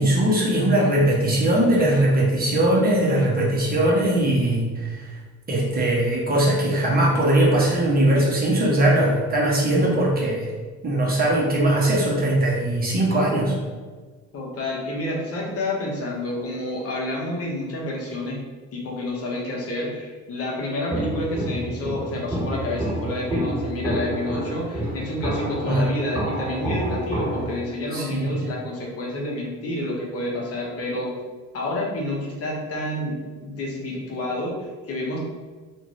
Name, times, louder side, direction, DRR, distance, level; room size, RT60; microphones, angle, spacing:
voice 1, 0.0-5.2 5.5-10.5 10.8-13.6 25.6-25.8 27.9-28.3, right 1 dB, 30° right, -4 dB, 0.9 m, -20 dB
voice 2, 14.3-18.4 18.7-31.1 31.5-35.2, left 1 dB, 50° left, -3 dB, 0.9 m, -29 dB
Walk footsteps, 20.9-27.6, right 1 dB, 5° right, 1.5 m, -28 dB
2.6 x 2.4 x 3.1 m, 1.4 s
supercardioid pair, 85°, 30 cm